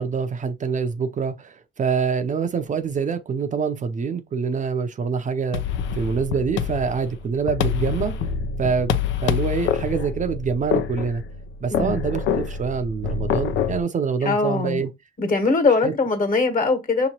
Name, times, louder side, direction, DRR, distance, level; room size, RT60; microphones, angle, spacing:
voice 1, 0.0-5.6 5.9-8.1 8.6-11.2 11.6-14.9 15.8-15.9, right 5 dB, 40° right, 0.5 m, -25 dB
sound 1, 5.5-13.8, left 7 dB, 75° left, 0.5 m, -26 dB
voice 2, 14.2-14.8 15.2-17.1, left 3 dB, 45° left, 1.4 m, -21 dB
5.8 x 3.0 x 2.8 m
cardioid pair, 90°, 20 cm